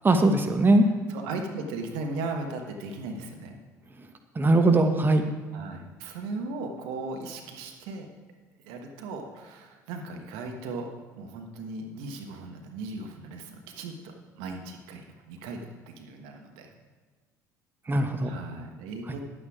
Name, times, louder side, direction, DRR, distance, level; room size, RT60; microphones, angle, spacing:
voice 1, 0.0-0.9 4.3-5.2 17.9-18.3 19.1-19.2, right 2 dB, 25° right, 6 dB, 1.1 m, -20 dB
voice 2, 1.1-3.5 5.5-8.1 8.6-10.9 11.1-16.7 18.2-19.3, right 3 dB, 70° right, 4 dB, 1.3 m, -37 dB
10.5 x 8.8 x 5.0 m, 1.4 s
hypercardioid pair, 60°, 9 cm